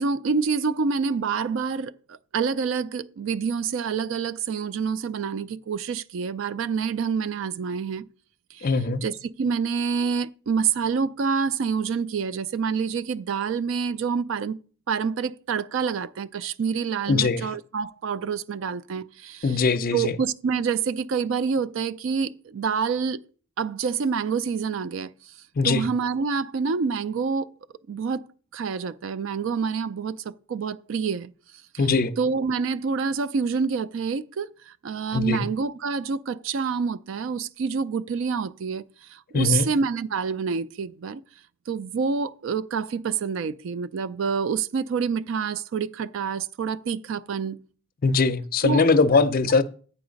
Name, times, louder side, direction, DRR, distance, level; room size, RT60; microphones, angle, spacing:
voice 1, 0.0-8.1 8.5-8.7 9.0-14.6 14.9-19.6 19.9-23.2 23.6-25.1 25.6-27.5 27.9-28.3 28.5-31.3 31.7-31.9 32.2-38.8 39.1-41.2 41.7-47.6 48.6-48.8, right 5 dB, 65° right, 0.4 m, -27 dB
voice 2, 8.6-9.0 17.1-17.5 19.4-20.1 25.6-25.8 31.8-32.1 35.1-35.5 39.3-39.7 48.0-49.6, left 4 dB, 45° left, 0.5 m, -21 dB
8.8 x 4.7 x 5.1 m
head